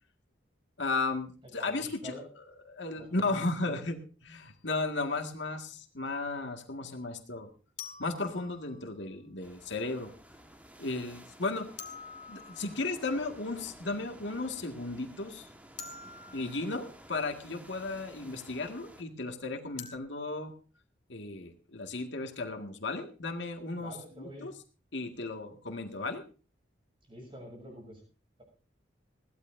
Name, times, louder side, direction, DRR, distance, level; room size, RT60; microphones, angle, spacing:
voice 1, 0.8-2.3 2.7-7.5 8.0-10.1 10.8-11.7 12.3-15.5 16.3-20.5 21.1-24.5 24.9-26.2, left 3 dB, 75° left, 4 dB, 1.9 m, -35 dB
voice 2, 1.4-2.2 3.0-3.8 23.8-24.5 27.1-28.0, right 1 dB, 30° right, 2 dB, 7.0 m, -47 dB
sound 1, 4.3-4.5 7.8-9.1 11.8-13.2 15.8-17.0 19.8-20.0, left 5 dB, 40° left, 2.2 m, -47 dB
sound 2, 9.4-19.0, right 1 dB, 10° right, 1.5 m, -53 dB
21.5 x 15.5 x 2.7 m, 0.36 s
head